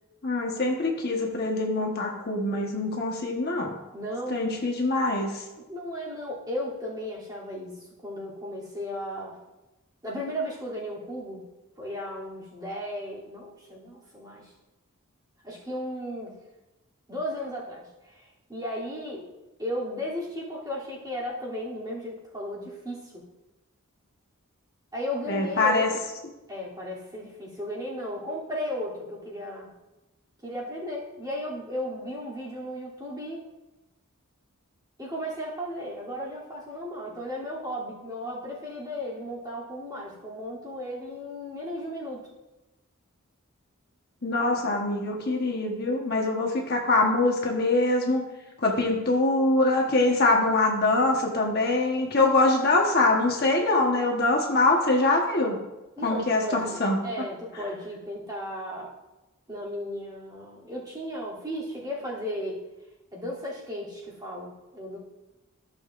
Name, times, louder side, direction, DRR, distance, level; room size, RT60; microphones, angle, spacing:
voice 1, 0.2-3.7 4.3-5.4 25.3-25.9 44.2-48.2 48.6-55.6 56.0-57.0, left 2 dB, 45° left, 0 dB, 1.2 m, -24 dB
voice 2, 3.9-4.4 5.6-9.4 10.0-11.5 11.8-14.5 15.4-16.3 17.1-19.3 19.6-23.2 24.9-25.9 26.5-29.7 30.4-33.4 35.0-42.2 56.0-58.9 59.5-62.6 63.1-65.0, equal, 20° right, -7 dB, 2.9 m, -35 dB
15.0 x 7.0 x 2.5 m, 1.0 s
head